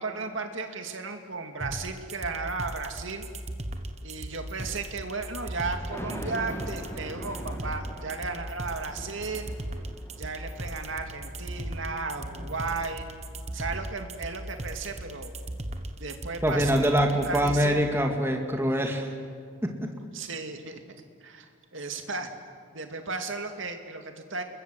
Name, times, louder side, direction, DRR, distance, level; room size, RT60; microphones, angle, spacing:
voice 1, 0.0-3.3 4.0-9.6 10.2-13.1 13.5-15.3 16.0-16.9 17.3-17.9 20.1-20.8 21.2-22.3 22.7-24.4, right 4 dB, 60° right, 5 dB, 2.4 m, -35 dB
sound 1, 1.6-17.6, right 1 dB, 30° right, 1.2 m, -37 dB
Thunder, 5.2-13.4 13.8-13.9, equal, 10° left, 2.8 m, -43 dB
voice 2, 16.4-19.1 19.6-19.9, equal, 10° right, 3 dB, 2.2 m, -24 dB
29.0 x 22.0 x 7.8 m, 2.1 s
head